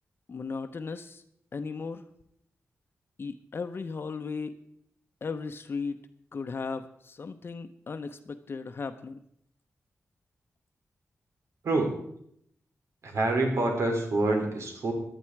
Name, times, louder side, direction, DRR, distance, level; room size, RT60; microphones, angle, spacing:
voice 1, 0.3-1.2 1.5-2.0 3.2-4.5 5.2-6.0 6.3-9.2, left 4 dB, 50° left, 8 dB, 0.8 m, -36 dB
voice 2, 13.0-14.9, right 2 dB, 75° right, 2 dB, 3.4 m, -26 dB
15.0 x 11.5 x 4.7 m, 0.72 s
wide cardioid pair, 100°, 5 cm